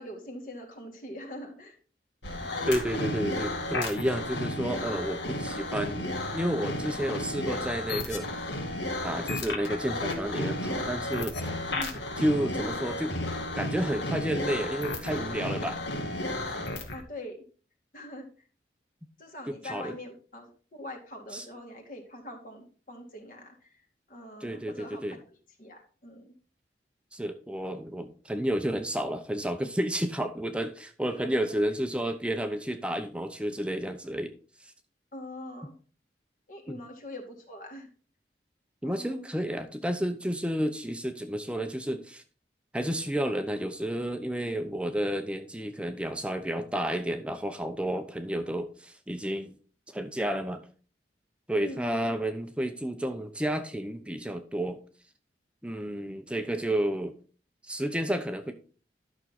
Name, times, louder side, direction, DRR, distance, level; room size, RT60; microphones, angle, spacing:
voice 1, 0.0-1.8 11.7-11.9 16.9-17.4 17.9-18.5 19.2-23.8 24.1-25.2 25.6-26.3 31.1-31.4 35.1-35.8 36.5-37.9 38.8-39.3 51.6-52.1 56.3-56.5, left 1 dB, 50° left, 3 dB, 2.3 m, -43 dB
sound 1, 2.2-17.0, left 1 dB, 85° left, 2.2 m, -33 dB
voice 2, 2.7-8.5 9.0-11.4 12.2-13.2 13.6-15.8 16.6-16.7 19.6-20.0 21.3-21.4 24.4-25.2 27.1-34.3 36.7-36.8 38.8-42.2 42.7-49.5 49.9-50.6 51.5-54.8 55.6-57.1 57.6-58.6, equal, 5° right, 7 dB, 0.7 m, -31 dB
12.0 x 6.3 x 4.1 m, 0.38 s
head